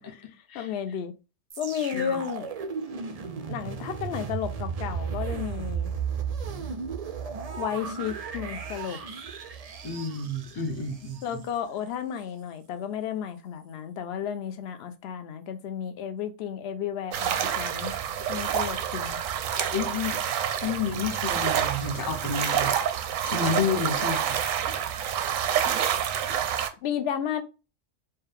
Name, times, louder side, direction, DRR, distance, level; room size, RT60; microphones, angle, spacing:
voice 1, 0.5-1.1 1.6-2.6 3.5-5.9 7.6-9.0 11.2-17.9 18.3-19.2 26.8-27.4, left 8 dB, 60° left, 0.8 m, -32 dB
sound 1, 1.5-11.6 12.2-12.3, right 6 dB, 65° right, 0.3 m, -35 dB
voice 2, 9.8-11.2 19.7-20.2 20.6-22.7 23.2-24.4, left 4 dB, 25° left, 0.5 m, -30 dB
sound 2, 17.1-26.7, right 9 dB, 90° right, 1.0 m, -28 dB
4.4 x 2.3 x 3.3 m
omnidirectional pair, 1.3 m